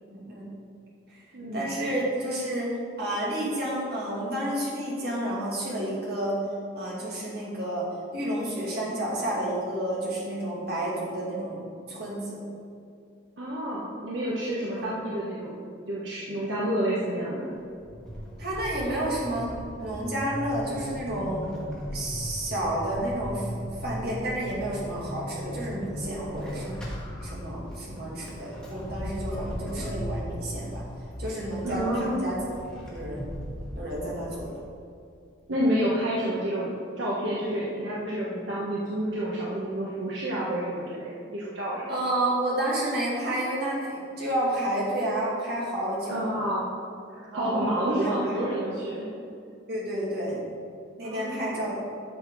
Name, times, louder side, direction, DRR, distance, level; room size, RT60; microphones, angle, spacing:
voice 1, 0.1-0.5 1.5-6.4 6.7-7.9 8.1-12.4 14.8-14.9 18.4-21.5 21.9-23.5 23.8-26.8 27.2-30.8 31.2-32.4 32.9-33.2 33.8-34.5 41.9-46.2 47.3-48.2 49.7-50.4 51.0-51.8, right 1 dB, 55° right, -5 dB, 2.6 m, -30 dB
voice 2, 1.3-1.7 13.4-15.5 15.8-17.5 31.6-32.2 35.5-42.0 46.1-46.7 47.1-49.1 51.0-51.6, right 1 dB, 70° right, -6 dB, 1.4 m, -29 dB
Vehicle / Accelerating revving vroom / Squeak, 17.5-34.7, equal, 5° left, 1.7 m, -37 dB
12.0 x 6.6 x 4.1 m, 2.3 s
head